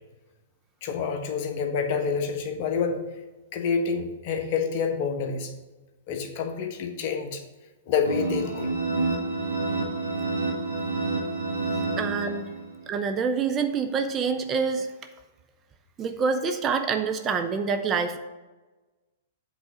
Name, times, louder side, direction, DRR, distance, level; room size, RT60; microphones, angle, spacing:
voice 1, 0.8-3.0 3.5-5.5 6.1-7.4 7.9-8.7, left 6 dB, 45° left, 4 dB, 1.2 m, -28 dB
sound 1, 8.0-12.8, right 3 dB, 90° right, 1.4 m, -28 dB
voice 2, 12.0-12.5 12.9-14.9 16.0-18.2, right 5 dB, 25° right, 6 dB, 0.7 m, -26 dB
7.9 x 4.1 x 6.1 m, 1.2 s
figure-of-eight pair, 110°, 0 cm